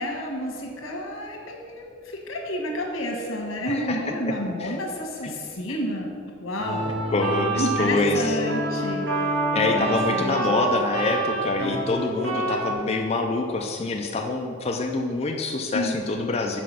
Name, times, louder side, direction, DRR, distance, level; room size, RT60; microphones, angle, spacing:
voice 1, 0.0-6.1 6.4-6.9 7.5-10.6 15.7-16.0, left 1 dB, 85° left, 1 dB, 1.4 m, -30 dB
voice 2, 3.7-4.0 4.6-4.8 5.2-5.3 6.9-8.4 9.5-16.6, left 3 dB, 30° left, 2 dB, 0.4 m, -26 dB
sound 1, 6.6-12.7, right 2 dB, 60° right, 2.0 m, -27 dB
6.0 x 4.5 x 6.2 m, 2.2 s
head